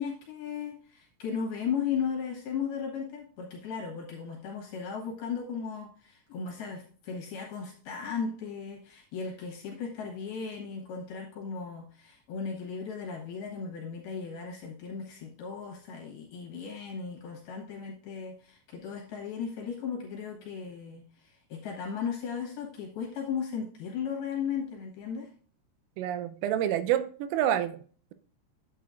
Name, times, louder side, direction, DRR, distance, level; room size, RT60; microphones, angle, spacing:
voice 1, 0.0-25.3, left 6 dB, 65° left, 2.6 m, -36 dB
voice 2, 26.0-27.8, right 11 dB, 85° right, 3.3 m, -28 dB
9.9 x 8.5 x 2.5 m
omnidirectional pair, 5.9 m